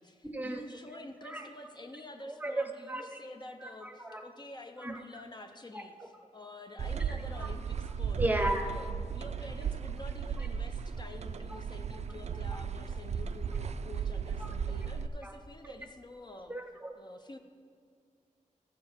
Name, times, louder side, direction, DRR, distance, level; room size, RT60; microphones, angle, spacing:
voice 1, 0.0-8.2 8.6-16.5 17.0-17.4, left 2 dB, 35° left, 5 dB, 0.5 m, -48 dB
voice 2, 2.3-3.2 3.6-4.2 4.8-5.0 5.7-5.8 7.3-7.5 8.1-8.7 14.4-14.5 15.2-15.3 16.5-16.9, right 1 dB, 10° right, 4 dB, 0.7 m, -35 dB
sound 1, 6.8-15.1, right 6 dB, 55° right, 0.4 m, -35 dB
14.0 x 6.8 x 4.3 m, 2.2 s
wide cardioid pair, 135°, 13 cm